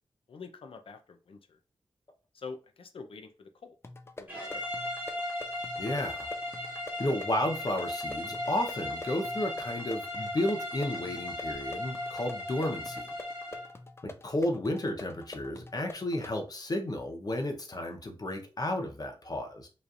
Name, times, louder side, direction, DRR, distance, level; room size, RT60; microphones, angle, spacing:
voice 1, 0.3-1.6 2.3-3.8 4.2-4.9, left 4 dB, 70° left, 6 dB, 0.6 m, -46 dB
sound 1, 3.8-16.4, left 2 dB, 25° left, 0.4 m, -47 dB
sound 2, 4.3-13.7, left 1 dB, 20° right, 2.1 m, -37 dB
voice 2, 5.8-6.3 7.0-13.1 14.0-19.7, left 1 dB, 40° left, 4 dB, 0.9 m, -32 dB
5.1 x 3.2 x 2.5 m, 0.34 s
wide cardioid pair, 105°, 10 cm